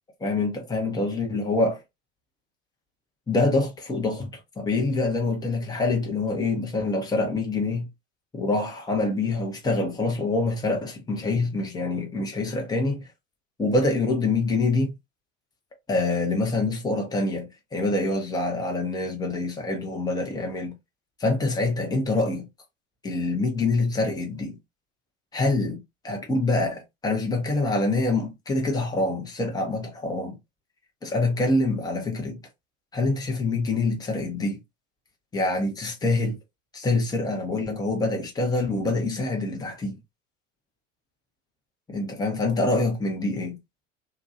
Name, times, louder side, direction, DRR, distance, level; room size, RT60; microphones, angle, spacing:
voice 1, 0.2-1.8 3.3-4.3 4.6-7.9 8.3-13.0 13.6-14.9 15.9-20.7 21.2-22.5 23.0-24.6 25.3-30.4 31.0-32.4 32.9-34.6 35.3-36.4 36.7-40.0 41.9-43.6, left 2 dB, 10° left, 0.7 m, -25 dB
2.9 x 2.2 x 2.5 m
figure-of-eight pair, 70°, 39 cm